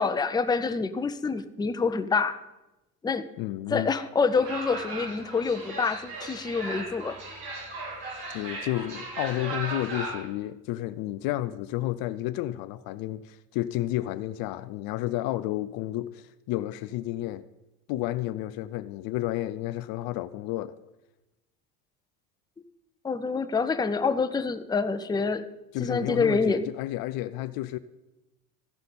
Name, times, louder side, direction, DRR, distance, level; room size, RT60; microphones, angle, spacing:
voice 1, 0.0-2.4 3.0-3.3 3.7-7.2 23.0-25.4 25.8-26.6, left 4 dB, 10° left, 0.6 m, -26 dB
voice 2, 3.4-3.9 8.3-17.4 17.9-20.7 25.7-27.8, left 15 dB, 50° left, 0.6 m, -31 dB
sound 1, 4.3-10.2, right 2 dB, 60° right, 4.5 m, -37 dB
14.5 x 5.7 x 5.3 m
hypercardioid pair, 80°, 46 cm